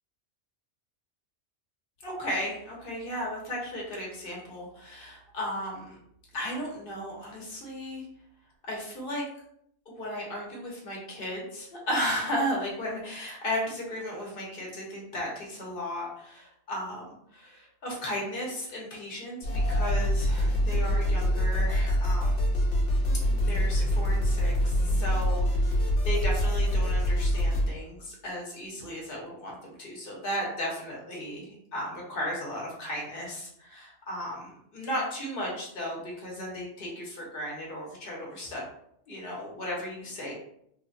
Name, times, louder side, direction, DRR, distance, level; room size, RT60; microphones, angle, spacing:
voice 1, 2.0-6.0 6.3-8.1 8.7-9.2 9.9-17.0 17.3-22.5 23.4-38.6 39.1-40.3, equal, 55° left, -3 dB, 1.0 m, -35 dB
sound 1, 19.4-27.6, equal, 75° left, 1.1 m, -25 dB
3.1 x 2.1 x 2.5 m, 0.73 s
omnidirectional pair, 1.2 m